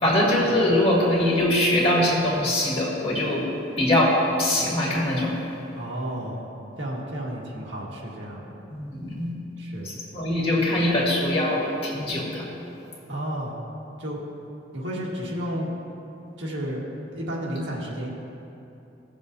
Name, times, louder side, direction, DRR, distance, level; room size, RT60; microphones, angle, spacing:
voice 1, 0.0-3.5 3.8-5.4 8.7-9.3 9.8-12.5, left 1 dB, 30° left, -6 dB, 2.0 m, -22 dB
voice 2, 5.7-6.4 6.8-8.5 9.6-9.9 13.1-13.6 14.0-14.2 14.7-15.7 16.4-16.9 17.1-18.1, equal, 80° right, -4 dB, 1.7 m, -32 dB
16.5 x 7.1 x 2.7 m, 2.8 s
head